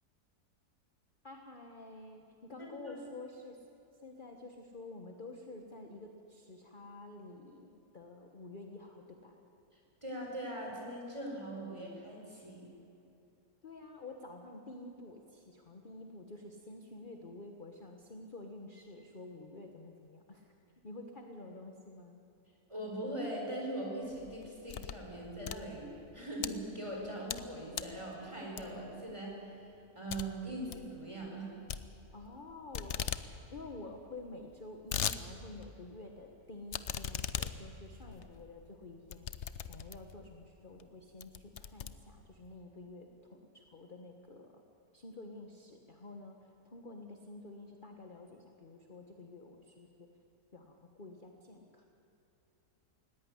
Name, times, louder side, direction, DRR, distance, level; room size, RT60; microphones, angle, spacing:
voice 1, 1.2-3.6 4.0-9.4 13.6-20.5 20.8-22.2 32.1-44.6 44.9-50.1 50.5-51.9, left 2 dB, 35° left, 3 dB, 1.4 m, -50 dB
voice 2, 2.6-2.9 10.0-12.7 22.7-25.9 26.1-31.5, right 1 dB, 20° right, -1 dB, 4.8 m, -41 dB
sound 1, 24.1-25.1 25.4-26.5 27.0-27.5 27.7-28.0 28.6-28.9 29.3-29.4 29.7-29.8 30.1-30.3 30.5-30.9 31.7-32.4 32.7-33.3 33.6-33.7 33.8-33.9 34.5-35.2 35.6-35.7 36.7-40.2 40.8-40.9 41.2-42.5, left 9 dB, 55° left, 0.9 m, -39 dB
19.0 x 17.0 x 9.9 m, 2.9 s
omnidirectional pair, 1.7 m